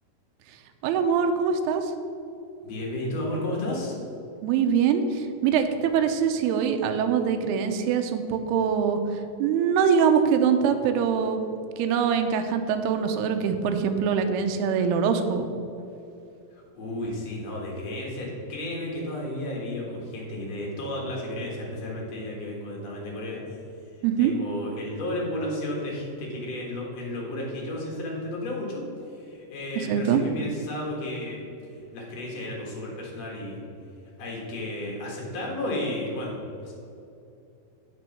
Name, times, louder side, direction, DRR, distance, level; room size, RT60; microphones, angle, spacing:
voice 1, 0.8-1.9 4.4-9.0 9.4-11.4 11.8-15.5 24.0-24.3 29.9-30.2, right 7 dB, 80° right, 6 dB, 2.4 m, -23 dB
voice 2, 2.6-4.0 16.5-23.6 24.2-33.6 34.2-36.7, left 1 dB, 55° left, -2 dB, 1.9 m, -33 dB
7.9 x 6.2 x 5.8 m, 2.7 s
omnidirectional pair, 5.0 m